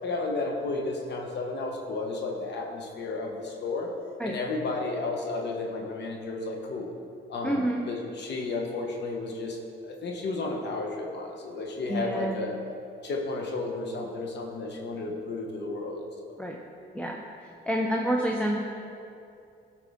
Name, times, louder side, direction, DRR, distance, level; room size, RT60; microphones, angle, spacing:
voice 1, 0.0-3.9 4.2-6.9 7.3-12.6 13.0-16.4, left 3 dB, 60° left, 0 dB, 1.1 m, -33 dB
voice 2, 7.4-7.8 11.9-12.4 16.4-16.6 16.9-17.2 17.7-18.6, right 1 dB, 5° left, -1 dB, 0.7 m, -28 dB
12.5 x 4.8 x 3.6 m, 2.6 s
cardioid pair, 90°, 20 cm